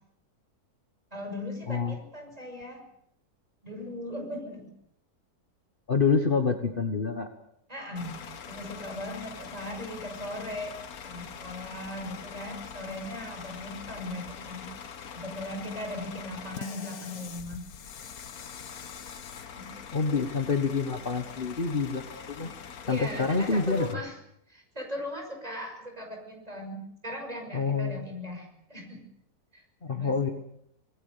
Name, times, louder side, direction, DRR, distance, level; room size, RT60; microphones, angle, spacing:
voice 1, 1.1-2.8 3.6-4.7 7.7-8.1 8.5-10.8 11.0-14.7 15.1-17.6 19.6-19.7 20.0-20.3 22.9-24.2 24.5-29.0 29.5-29.6 29.9-30.3, left 1 dB, 25° right, 2 dB, 6.1 m, -38 dB
voice 2, 1.7-2.0 5.9-7.3 19.9-22.5 22.9-24.0 27.5-28.1 29.8-30.3, left 4 dB, 35° left, 5 dB, 1.6 m, -27 dB
Bus / Idling, 8.0-23.9, left 7 dB, 70° left, 1.6 m, -43 dB
26.0 x 19.0 x 6.8 m, 0.73 s
omnidirectional pair, 1.6 m